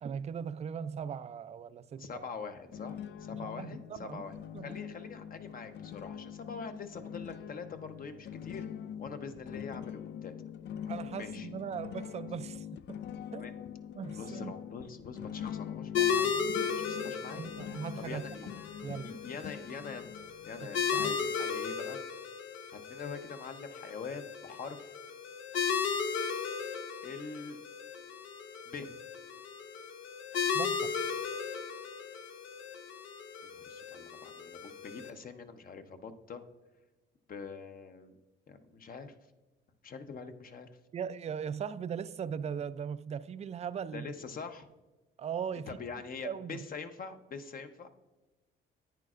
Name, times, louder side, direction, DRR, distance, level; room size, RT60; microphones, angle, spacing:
voice 1, 0.0-2.2 3.4-4.2 4.5-4.8 10.9-13.0 13.3-13.5 13.9-14.6 17.4-18.5 18.8-19.2 20.6-21.2 30.5-31.0 40.9-44.1 45.2-45.8 46.2-46.6, right 7 dB, 35° right, 0.4 m, -39 dB
voice 2, 2.0-4.3 4.6-8.7 9.0-10.3 11.2-11.5 13.4-13.5 14.2-16.4 16.7-17.4 18.0-18.5 19.0-22.0 22.7-24.9 27.0-27.6 28.7-28.9 33.4-36.4 37.3-38.1 38.5-39.1 39.8-40.7 43.9-44.7 45.7-47.9, left 5 dB, 45° left, 0.8 m, -44 dB
sound 1, 2.7-21.1, left 9 dB, 60° left, 0.4 m, -44 dB
sound 2, 15.9-35.1, left 6 dB, 80° left, 0.8 m, -36 dB
10.5 x 8.9 x 2.4 m
cardioid pair, 90°, 20 cm